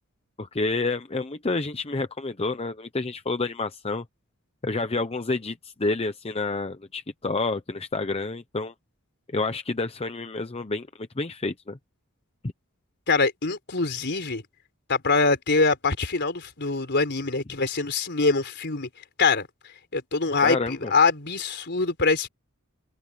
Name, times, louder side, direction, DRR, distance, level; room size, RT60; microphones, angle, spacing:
voice 1, 0.4-4.0 4.6-8.7 9.3-11.8 20.4-20.9, left 3 dB, 30° left, 0.8 m, -29 dB
voice 2, 13.1-14.4 14.9-18.9 19.2-22.3, left 4 dB, 55° left, 4.2 m, -24 dB
head